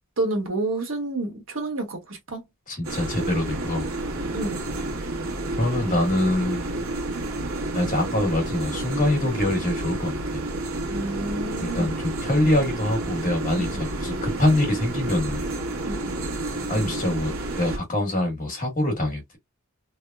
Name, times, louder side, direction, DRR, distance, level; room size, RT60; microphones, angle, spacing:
voice 1, 0.2-2.4 4.3-4.7 10.9-11.9 13.6-13.8 15.8-16.2, right 2 dB, 65° right, 1.3 m, -29 dB
voice 2, 2.7-3.9 5.6-6.7 7.7-10.4 11.6-15.4 16.7-19.4, left 1 dB, 40° left, 1.5 m, -24 dB
sound 1, 2.8-17.8, right 2 dB, 80° right, 1.2 m, -30 dB
3.4 x 2.1 x 2.3 m
head